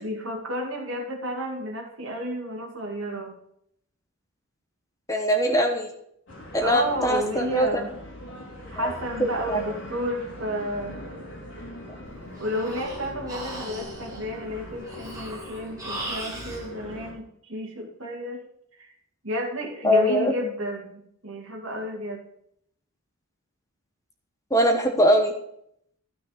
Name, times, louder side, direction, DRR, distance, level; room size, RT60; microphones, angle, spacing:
voice 1, 0.0-3.4 6.6-7.9 8.7-11.0 12.4-18.4 18.8-18.9 19.2-22.2, equal, 60° right, 2 dB, 2.4 m, -31 dB
voice 2, 5.1-5.9 6.5-7.8 8.8-8.9 9.2-9.6 19.8-20.3 24.5-25.3, equal, 15° left, 4 dB, 1.0 m, -22 dB
sound 1, 6.3-17.1, left 1 dB, 55° left, 4.3 m, -41 dB
Breathing, 12.1-16.6, right 2 dB, 15° right, 2.3 m, -38 dB
12.5 x 6.1 x 6.7 m, 0.71 s
head